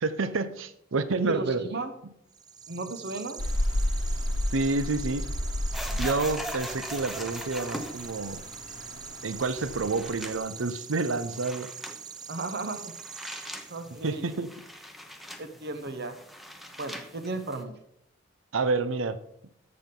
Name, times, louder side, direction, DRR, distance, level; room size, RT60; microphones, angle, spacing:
voice 1, 0.0-1.6 4.5-5.3 6.0-8.4 9.2-11.7 14.0-14.5 18.5-19.2, right 3 dB, 90° right, 13 dB, 0.7 m, -28 dB
voice 2, 1.3-1.9 2.7-3.4 12.3-12.9 13.7-14.2 15.4-16.2 16.8-17.7, right 2 dB, 60° right, 7 dB, 0.8 m, -35 dB
sound 1, 2.3-14.1, right 7 dB, 20° right, 0.3 m, -44 dB
Rain, 3.4-10.4, left 1 dB, 80° left, 1.3 m, -33 dB
sound 2, 5.7-17.6, equal, ahead, 0.8 m, -42 dB
14.0 x 5.8 x 3.7 m, 0.74 s
head